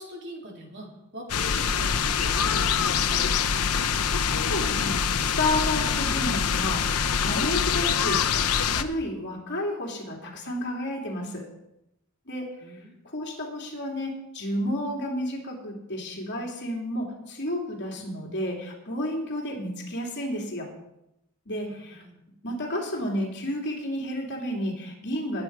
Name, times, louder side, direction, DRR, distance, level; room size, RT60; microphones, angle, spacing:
voice 1, 0.0-3.9 12.6-12.9 21.7-22.2, equal, 55° right, -1 dB, 3.3 m, -42 dB
sound 1, 1.3-8.8, left 7 dB, 90° left, 0.8 m, -25 dB
voice 2, 4.4-11.5 12.3-20.7 21.4-22.0 22.4-25.4, left 1 dB, 50° left, -1 dB, 3.1 m, -31 dB
20.0 x 8.6 x 4.8 m, 0.85 s
head